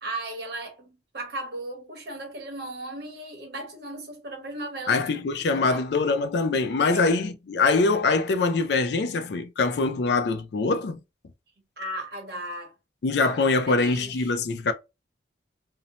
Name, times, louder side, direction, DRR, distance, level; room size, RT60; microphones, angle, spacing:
voice 1, 0.0-5.9 6.9-7.1 11.8-12.7 13.2-13.3 13.7-14.1, right 1 dB, 55° right, 0.9 m, -36 dB
voice 2, 4.9-11.0 13.0-14.7, left 3 dB, 65° left, 0.4 m, -23 dB
2.7 x 2.1 x 2.8 m
head